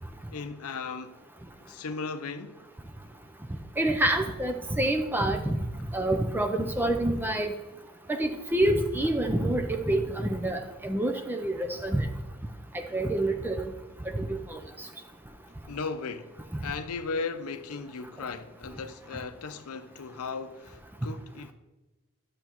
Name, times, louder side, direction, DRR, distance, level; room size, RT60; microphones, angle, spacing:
voice 1, 0.3-1.2 1.6-2.6 5.9-6.0 15.7-21.5, left 4 dB, 75° left, 0.6 m, -37 dB
voice 2, 3.8-5.6 5.9-7.5 8.1-12.1 12.9-13.7 14.1-14.6, right 1 dB, 10° right, 0.4 m, -27 dB
10.5 x 6.7 x 3.0 m
head